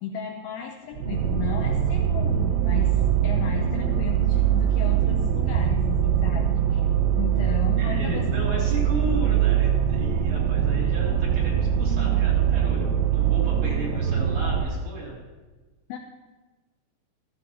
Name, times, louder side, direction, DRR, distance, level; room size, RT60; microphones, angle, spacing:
voice 1, 0.0-6.8 7.2-8.3 15.9-16.0, left 6 dB, 85° left, 3 dB, 2.2 m, -34 dB
sound 1, 1.0-14.6, right 9 dB, 85° right, 2.7 m, -22 dB
voice 2, 7.8-15.2, right 1 dB, 50° right, -5 dB, 3.8 m, -35 dB
14.0 x 14.0 x 2.9 m, 1.3 s
omnidirectional pair, 5.2 m